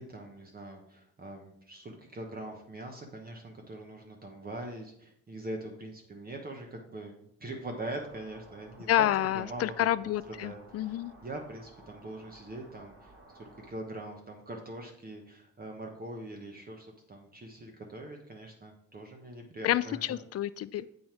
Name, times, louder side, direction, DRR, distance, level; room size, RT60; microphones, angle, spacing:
voice 1, 0.0-9.0 9.3-10.1 10.4-11.0 11.2-20.0, right 2 dB, 30° right, 2 dB, 1.1 m, -43 dB
sound 1, 8.0-13.7, right 2 dB, 45° right, 3.4 m, -55 dB
voice 2, 8.9-11.1 19.6-20.9, left 12 dB, 55° left, 16 dB, 0.4 m, -29 dB
7.5 x 5.5 x 4.4 m, 0.72 s
cardioid pair, 90°, 30 cm